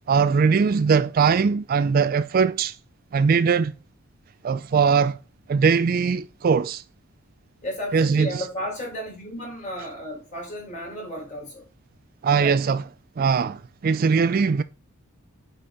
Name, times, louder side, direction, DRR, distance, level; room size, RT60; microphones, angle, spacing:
voice 1, 0.1-2.7 3.1-3.7 4.4-5.2 5.5-6.8 7.9-8.4 12.2-12.8 13.2-14.6, right 5 dB, 40° right, 0.3 m, -20 dB
voice 2, 7.6-11.7 12.3-12.5 13.4-13.5, equal, 35° left, 3.9 m, -33 dB
8.7 x 4.3 x 3.6 m
head